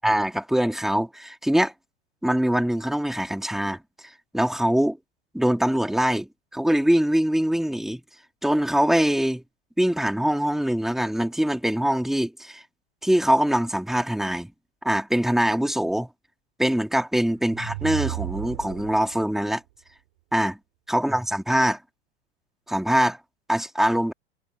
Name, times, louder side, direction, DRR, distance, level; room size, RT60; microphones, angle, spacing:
voice 1, 0.0-1.7 2.2-3.8 4.3-5.0 5.3-6.3 6.5-8.0 8.4-9.4 9.8-12.6 13.0-14.5 14.8-16.1 16.6-19.6 20.3-20.6 20.9-21.8 22.7-23.2 23.5-24.1, equal, ahead, 3.1 m, -23 dB
sound 1, 17.3-19.3, right 20 dB, 55° right, 7.8 m, -33 dB
figure-of-eight pair, 90°, 30 cm